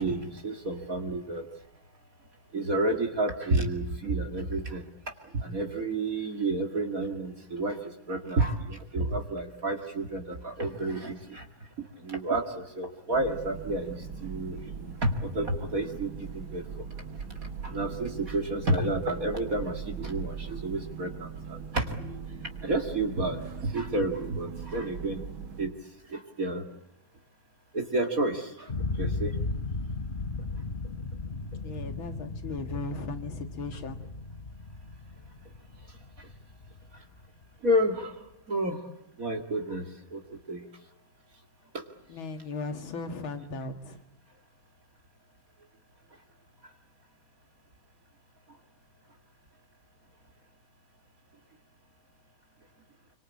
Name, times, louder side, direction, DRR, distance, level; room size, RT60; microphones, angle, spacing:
voice 1, 0.0-1.5 2.5-4.9 5.2-11.5 11.8-16.8 17.6-22.0 22.6-25.2 25.6-25.7 26.1-26.7 27.7-29.3 36.2-36.3 37.6-38.2 38.5-38.8 39.2-40.6 41.7-41.9, right 1 dB, 45° right, 3 dB, 2.6 m, -30 dB
sound 1, 13.1-25.7, right 6 dB, 85° right, 2.9 m, -40 dB
sound 2, 28.7-37.5, left 3 dB, 35° left, 0.9 m, -36 dB
voice 2, 31.6-34.0 42.1-44.0, left 3 dB, 80° left, 7 dB, 2.8 m, -37 dB
27.0 x 24.5 x 8.5 m, 0.84 s
omnidirectional pair, 2.2 m